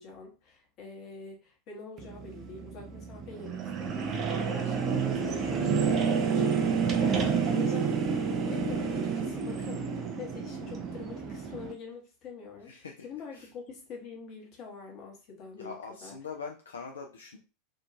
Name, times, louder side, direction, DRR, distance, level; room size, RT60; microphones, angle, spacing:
voice 1, 0.0-12.7 13.0-16.2, left 5 dB, 40° left, 1 dB, 0.9 m, -45 dB
sound 1, 2.0-11.7, right 6 dB, 35° right, 0.4 m, -29 dB
voice 2, 12.6-13.1 13.3-13.5 15.6-17.4, left 5 dB, 70° left, 1 dB, 0.3 m, -42 dB
2.7 x 2.2 x 2.5 m, 0.32 s
figure-of-eight pair, 85°, 0 cm